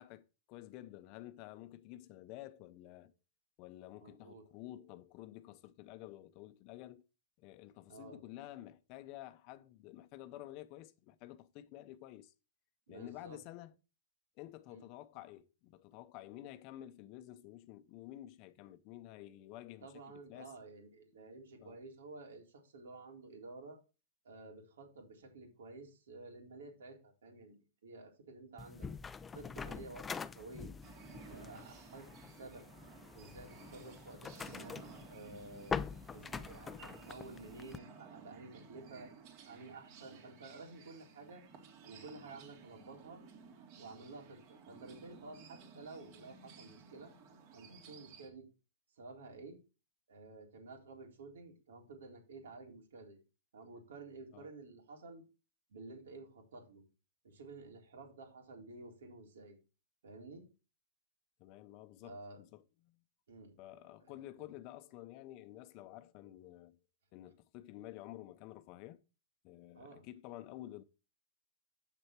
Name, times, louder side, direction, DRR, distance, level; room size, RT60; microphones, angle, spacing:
voice 1, 0.0-3.1 3.6-7.0 7.4-12.3 12.9-13.8 14.4-19.9 20.3-20.5 21.6-21.8 24.5-24.6 54.3-54.5 61.4-63.0 63.6-66.8 67.1-69.0 69.4-70.8, left 14 dB, 40° left, 0.7 m, -51 dB
voice 2, 4.0-4.4 7.9-8.2 12.9-13.4 14.7-14.9 19.8-23.8 24.2-27.6 27.8-28.9 29.3-30.7 31.3-32.7 33.1-34.8 35.1-35.8 36.1-39.1 39.5-41.4 41.8-43.2 43.8-47.1 47.5-48.5 49.0-49.6 50.1-53.2 53.5-55.2 55.7-56.8 57.2-59.6 60.0-60.5 62.0-62.4 63.3-63.6 64.1-64.5 69.7-70.0, right 3 dB, 80° right, 3.9 m, -52 dB
sound 1, 28.6-37.8, left 5 dB, 15° left, 0.5 m, -45 dB
sound 2, 30.8-48.3, right 5 dB, 45° right, 2.9 m, -56 dB
8.4 x 6.5 x 4.5 m
hypercardioid pair, 140°, 0 cm